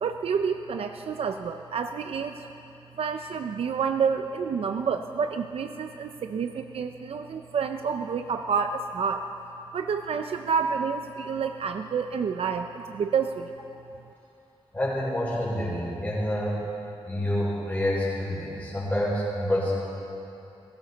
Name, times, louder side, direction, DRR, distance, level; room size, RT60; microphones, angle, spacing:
voice 1, 0.0-2.4 3.0-9.3 9.7-13.5, right 6 dB, 85° right, 6 dB, 0.5 m, -29 dB
voice 2, 14.7-16.6 17.0-19.7, left 1 dB, 15° left, -7 dB, 4.5 m, -27 dB
18.0 x 15.5 x 4.0 m, 2.9 s
wide cardioid pair, 155°, 10 cm